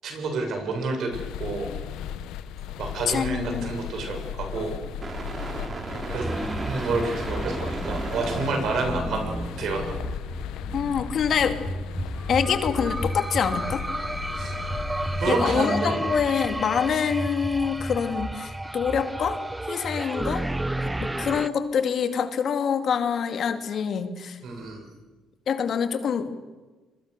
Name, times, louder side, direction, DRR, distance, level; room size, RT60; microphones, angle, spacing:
voice 1, 0.0-1.7 2.8-4.7 6.1-6.3 6.6-10.1 14.4-14.5 15.2-16.0 24.4-24.8, right 3 dB, 70° right, 3 dB, 7.5 m, -29 dB
sound 1, 1.1-15.3, left 9 dB, 85° left, 1.1 m, -36 dB
sound 2, 3.0-8.5, right 3 dB, 35° right, 3.4 m, -37 dB
voice 2, 3.1-3.7 10.7-11.6 12.3-13.8 15.3-19.4 19.7-20.5 21.0-24.4 25.5-26.3, left 7 dB, 60° left, 7 dB, 2.4 m, -25 dB
sound 3, 6.2-21.5, right 1 dB, 10° right, 0.8 m, -32 dB
27.0 x 22.5 x 6.8 m, 1.2 s
supercardioid pair, 80°, 0 cm